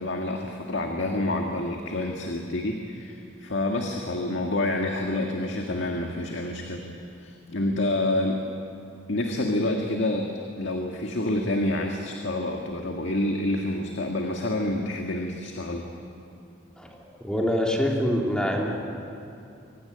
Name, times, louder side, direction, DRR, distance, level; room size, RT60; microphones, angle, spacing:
voice 1, 0.0-6.8 7.2-8.4 9.1-15.8, left 1 dB, 75° left, 2 dB, 1.8 m, -28 dB
voice 2, 16.8-18.7, equal, 5° left, -1 dB, 2.8 m, -25 dB
24.5 x 17.0 x 9.7 m, 2.6 s
head